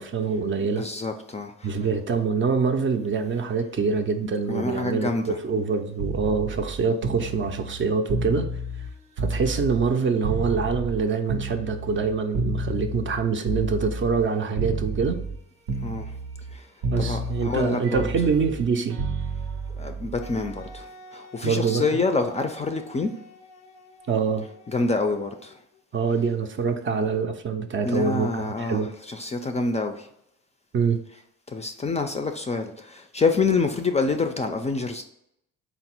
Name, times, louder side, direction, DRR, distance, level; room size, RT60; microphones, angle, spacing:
voice 1, 0.0-0.9 1.6-8.5 9.2-15.2 16.9-19.0 21.4-22.0 24.1-24.5 25.9-28.9 30.7-31.0, right 5 dB, 40° right, 0.5 m, -25 dB
voice 2, 0.6-1.9 4.5-5.4 15.8-16.1 16.5-16.7 17.0-18.3 19.7-23.1 24.7-25.6 27.8-30.1 31.1-31.2 31.5-35.0, left 3 dB, 25° left, 0.4 m, -27 dB
sound 1, 6.0-9.9 10.2-14.3 14.6-15.4 15.7-16.6 16.8-20.8 22.0-22.3, right 2 dB, 90° right, 0.7 m, -31 dB
Wind instrument woodwind instrument, 20.2-25.8, left 1 dB, 85° left, 0.5 m, -49 dB
3.9 x 2.0 x 4.3 m
cardioid pair, 90°, 30 cm